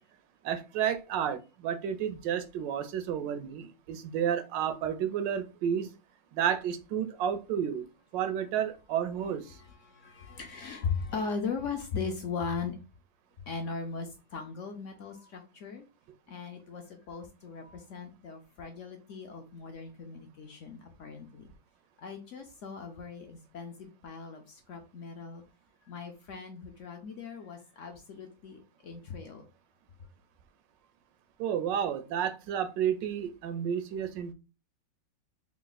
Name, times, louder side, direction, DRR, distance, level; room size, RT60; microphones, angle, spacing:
voice 1, 0.4-5.9 6.3-7.8 8.1-9.4 31.4-34.3, right 9 dB, 90° right, 1.3 m, -31 dB
voice 2, 9.2-12.8 13.5-15.8 16.3-21.5 22.0-25.4 25.8-29.4, left 5 dB, 70° left, 0.7 m, -39 dB
3.6 x 2.4 x 3.9 m
omnidirectional pair, 1.9 m